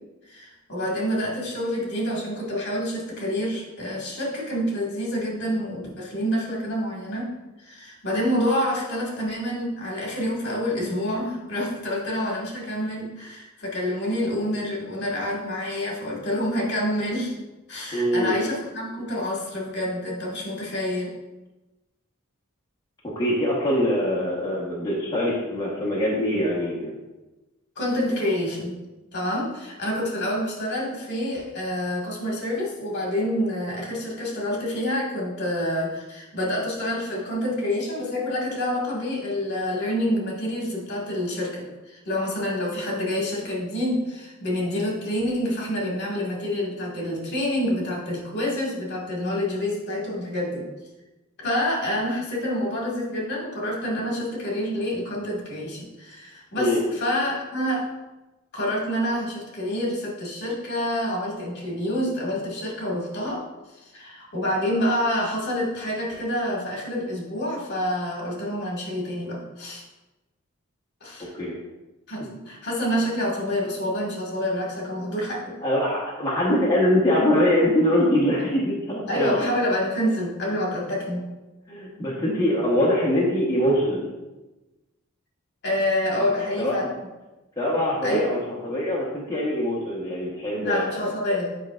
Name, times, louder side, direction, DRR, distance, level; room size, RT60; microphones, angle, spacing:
voice 1, 0.3-7.3 7.6-17.3 17.7-21.1 27.8-28.8 29.1-50.7 51.4-57.9 58.5-63.4 63.7-69.8 71.0-71.3 72.1-75.6 79.1-81.2 85.6-86.8 88.0-88.3 90.6-91.5, left 1 dB, 55° left, -3 dB, 1.8 m, -27 dB
voice 2, 17.9-18.4 23.1-26.9 56.6-56.8 71.3-71.5 75.6-79.5 81.7-84.1 86.1-86.2 86.6-86.9 87.6-90.9, left 1 dB, 20° left, -6 dB, 1.1 m, -23 dB
8.3 x 5.4 x 2.4 m, 1.1 s
head